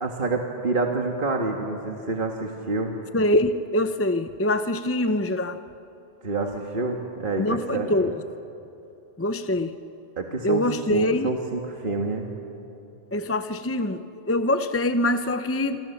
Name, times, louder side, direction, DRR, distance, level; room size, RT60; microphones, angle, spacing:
voice 1, 0.0-3.0 6.2-8.1 10.2-10.6 10.9-12.3, right 3 dB, 55° right, 2 dB, 1.8 m, -28 dB
voice 2, 3.1-5.6 7.4-8.1 9.2-9.7 10.4-11.3 13.1-15.8, left 1 dB, 15° left, 10 dB, 0.6 m, -24 dB
27.5 x 25.0 x 7.1 m, 2.8 s
omnidirectional pair, 1.1 m